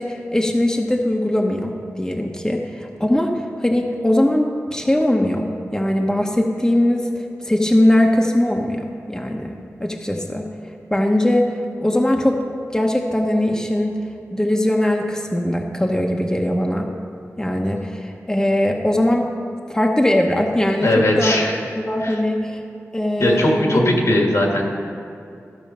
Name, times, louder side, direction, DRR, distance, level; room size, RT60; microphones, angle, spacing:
voice 1, 0.0-7.1 7.4-10.5 10.9-11.5 11.8-12.4 12.7-14.0 14.3-16.9 17.4-19.3 19.7-21.4 21.7-22.6 22.9-23.8, left 1 dB, 10° left, 1 dB, 0.8 m, -20 dB
voice 2, 20.8-21.6 22.0-22.2 23.2-24.6, left 1 dB, 70° left, 0 dB, 1.8 m, -18 dB
13.5 x 6.1 x 5.5 m, 2.5 s
wide cardioid pair, 75°, 5 cm